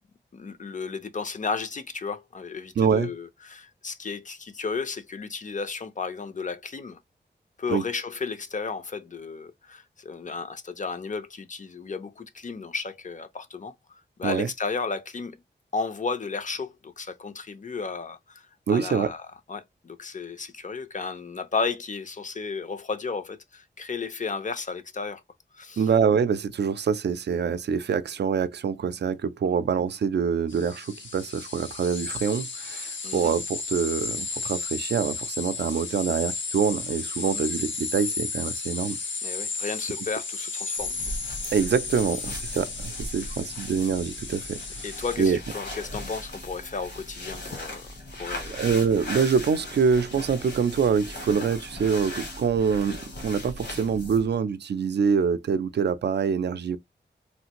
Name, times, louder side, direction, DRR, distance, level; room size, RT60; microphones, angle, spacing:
voice 1, 0.3-7.0 7.6-15.4 15.7-25.2 25.5-25.9 33.0-33.3 39.2-41.0 43.2-43.3 44.8-48.6, left 4 dB, 45° left, 0.5 m, -33 dB
voice 2, 2.8-3.1 7.7-7.8 14.2-14.5 18.7-19.1 25.8-39.0 41.5-45.4 48.5-56.8, right 6 dB, 65° right, 0.4 m, -25 dB
sound 1, 30.5-45.2, left 4 dB, 85° left, 0.8 m, -34 dB
sound 2, 40.8-54.3, left 1 dB, 70° left, 1.2 m, -38 dB
3.2 x 2.5 x 2.9 m
wide cardioid pair, 110°, 19 cm